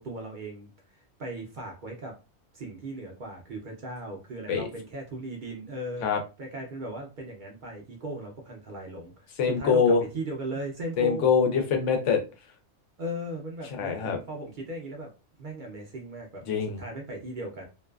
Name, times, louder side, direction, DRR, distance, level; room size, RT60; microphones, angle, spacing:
voice 1, 0.0-2.2 2.5-6.1 6.4-11.3 13.0-15.1 15.4-16.4 16.8-17.7, right 1 dB, 55° right, 0 dB, 0.6 m, -37 dB
voice 2, 9.4-10.0 11.0-12.2 13.8-14.2 16.5-16.8, left 6 dB, 90° left, 4 dB, 1.0 m, -23 dB
2.5 x 2.2 x 2.2 m, 0.30 s
omnidirectional pair, 1.2 m